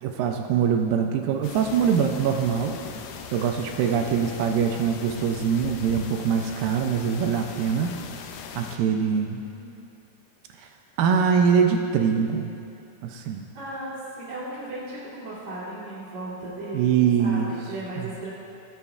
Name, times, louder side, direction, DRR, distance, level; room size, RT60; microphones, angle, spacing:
voice 1, 0.0-2.8 3.3-8.0 8.6-9.4 10.6-10.7 11.0-12.5 13.0-13.4 16.7-17.5 18.0-18.1, right 7 dB, 80° right, 3 dB, 2.1 m, -23 dB
sound 1, 1.4-8.8, left 7 dB, 85° left, 2.5 m, -40 dB
voice 2, 9.2-9.8 10.9-11.0 11.8-12.0 13.2-18.3, right 1 dB, 45° right, -10 dB, 3.6 m, -37 dB
19.0 x 6.7 x 2.4 m, 2.6 s
omnidirectional pair, 4.4 m